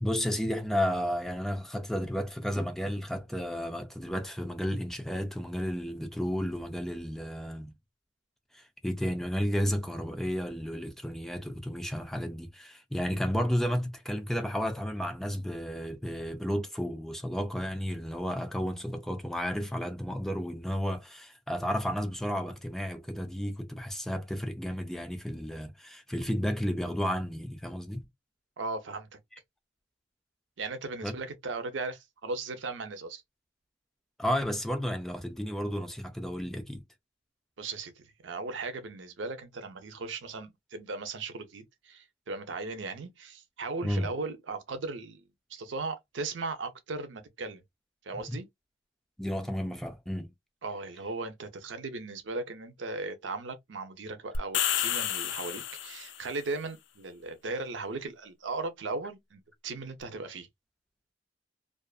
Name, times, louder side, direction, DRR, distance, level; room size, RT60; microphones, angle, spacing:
voice 1, 0.0-7.7 8.5-28.0 31.0-31.1 34.2-36.8 43.8-44.1 48.3-48.4 49.2-50.3, equal, ahead, 0.4 m, -32 dB
voice 2, 28.6-29.1 30.6-33.2 37.6-45.2 45.5-47.6 48.1-48.5 50.6-60.5, right 3 dB, 85° right, 0.6 m, -37 dB
sound 1, 54.3-56.3, left 10 dB, 70° left, 0.4 m, -30 dB
2.5 x 2.4 x 2.3 m
head